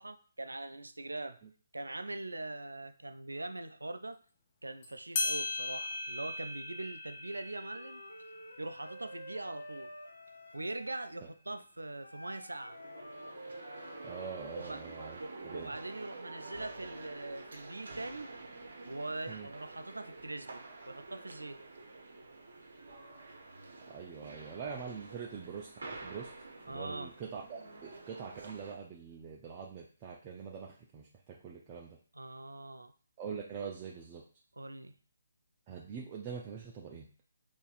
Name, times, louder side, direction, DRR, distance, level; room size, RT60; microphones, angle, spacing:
voice 1, 0.0-1.4 1.7-4.2 4.6-8.0 8.6-9.9 10.5-12.8 14.6-14.8 15.2-18.3 18.9-21.6 26.7-27.1 32.1-32.9 34.6-35.0, right 2 dB, 85° right, 11 dB, 0.3 m, -42 dB
sound 1, 4.8-4.9 5.2-10.2, left 3 dB, 40° left, 0.6 m, -39 dB
Wind instrument woodwind instrument, 7.5-11.2 12.0-14.6, equal, 85° left, 0.5 m, -50 dB
sound 2, 12.4-28.7, right 2 dB, 65° right, 0.8 m, -49 dB
voice 2, 14.0-15.8 19.3-19.5 23.9-26.3 26.7-32.0 33.2-34.2 35.7-37.1, right 6 dB, 25° right, -2 dB, 0.5 m, -44 dB
3.9 x 2.6 x 2.4 m, 0.41 s
figure-of-eight pair, 145°, 0 cm